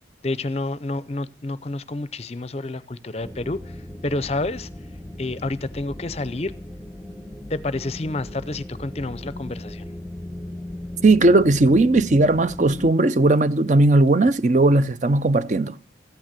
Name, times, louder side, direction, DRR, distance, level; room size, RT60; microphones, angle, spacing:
voice 1, 0.2-3.7 4.0-4.7 5.2-6.5 7.5-9.8, left 2 dB, 35° left, 0.6 m, -29 dB
sound 1, 3.2-12.9, left 1 dB, ahead, 1.0 m, -37 dB
voice 2, 11.0-15.8, right 2 dB, 40° right, 0.6 m, -17 dB
14.0 x 9.2 x 7.5 m
head